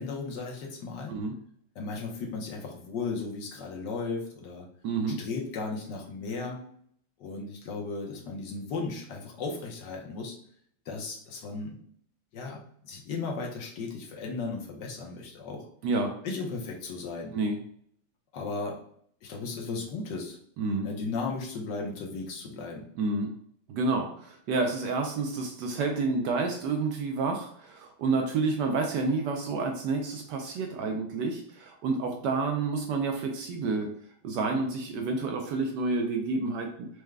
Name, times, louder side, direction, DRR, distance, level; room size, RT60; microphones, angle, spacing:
voice 1, 0.0-1.1 1.7-4.7 5.2-6.6 7.2-10.4 10.9-11.8 12.3-15.7 16.2-17.4 18.3-18.8 19.2-20.4 20.8-22.9, left 4 dB, 70° left, 0 dB, 1.3 m, -35 dB
voice 2, 4.8-5.2 15.8-16.1 17.3-17.6 20.6-20.9 23.0-23.3 23.7-33.9 34.2-36.9, right 3 dB, 75° right, 3 dB, 1.0 m, -29 dB
4.8 x 2.1 x 3.2 m, 0.64 s
omnidirectional pair, 2.1 m